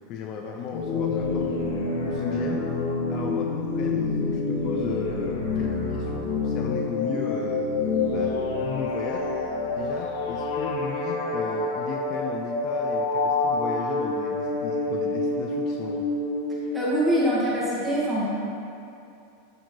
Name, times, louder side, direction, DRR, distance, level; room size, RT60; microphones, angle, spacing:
voice 1, 0.1-1.7 2.0-2.7 3.1-7.6 8.1-9.3 9.7-16.1, left 6 dB, 35° left, 2 dB, 0.5 m, -35 dB
sound 1, 0.7-16.9, left 3 dB, 65° left, 1.4 m, -27 dB
voice 2, 16.7-18.2, equal, 5° right, -8 dB, 1.9 m, -24 dB
11.5 x 5.0 x 3.9 m, 2.6 s
supercardioid pair, 165°, 0 cm